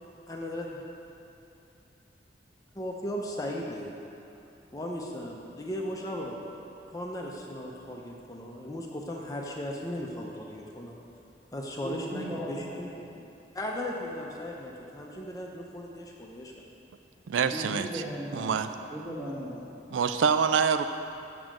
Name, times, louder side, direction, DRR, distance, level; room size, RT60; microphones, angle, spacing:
voice 1, 0.3-0.8 2.7-3.9 4.7-6.4 6.9-11.0 11.5-12.9 13.5-16.7, left 1 dB, 20° left, -1 dB, 0.7 m, -36 dB
voice 2, 11.8-13.2 17.5-19.6, equal, 10° right, -7 dB, 1.5 m, -38 dB
voice 3, 17.3-18.0 18.3-18.7 19.9-20.8, right 6 dB, 85° right, 10 dB, 0.4 m, -25 dB
7.2 x 6.1 x 7.5 m, 2.7 s
head